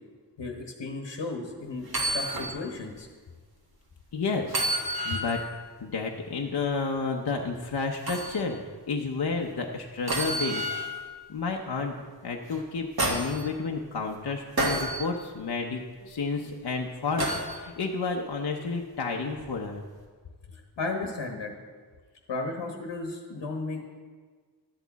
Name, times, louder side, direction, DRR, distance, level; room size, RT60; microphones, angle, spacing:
voice 1, 0.4-1.9 2.1-3.1 20.5-21.5 22.3-23.8, left 3 dB, 85° left, 2 dB, 1.1 m, -34 dB
sound 1, 1.8-2.5 3.0-3.1 4.5-5.5 8.1-8.3 10.1-11.0 12.5-13.4 14.6-15.0 17.2-17.5 19.3-19.5, right 1 dB, 60° right, 1.8 m, -29 dB
voice 2, 4.1-4.6 5.0-5.4 5.8-8.6 8.9-10.7 11.3-12.0 12.2-19.8, left 4 dB, 60° left, 1 dB, 0.8 m, -31 dB
12.5 x 8.4 x 4.0 m, 1.6 s
wide cardioid pair, 105°, 42 cm